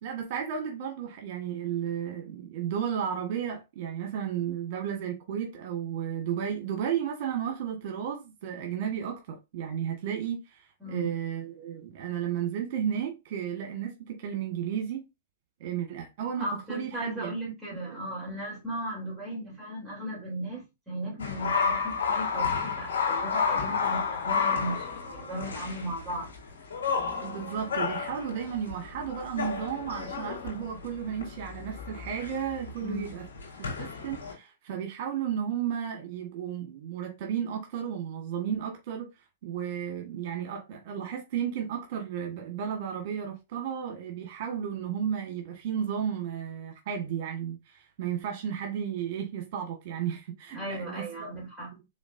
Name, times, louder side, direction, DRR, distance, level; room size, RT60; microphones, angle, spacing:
voice 1, 0.0-15.0 15.6-17.3 17.7-18.0 27.2-33.2 33.8-39.1 39.4-51.3, right 8 dB, 50° right, 1.5 m, -33 dB
voice 2, 10.8-11.1 16.4-26.3 32.8-33.1 50.5-51.7, right 1 dB, 10° right, 3.1 m, -36 dB
sound 1, 21.2-34.3, left 5 dB, 75° left, 2.7 m, -31 dB
5.0 x 3.9 x 2.6 m
hypercardioid pair, 120°, 0 cm